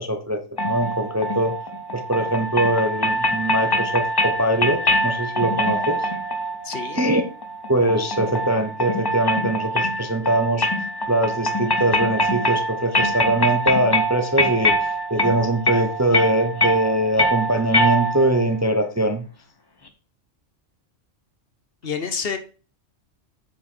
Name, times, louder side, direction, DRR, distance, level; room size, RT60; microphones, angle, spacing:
voice 1, 0.0-1.5 1.9-6.1 6.9-7.2 7.7-10.7 11.1-19.2, right 1 dB, 15° right, 7 dB, 0.6 m, -22 dB
sound 1, 0.6-18.4, equal, 25° left, 0.7 m, -24 dB
voice 2, 6.6-7.0 21.8-22.4, left 6 dB, 55° left, 9 dB, 1.0 m, -28 dB
8.6 x 4.9 x 4.3 m, 0.36 s
omnidirectional pair, 1.3 m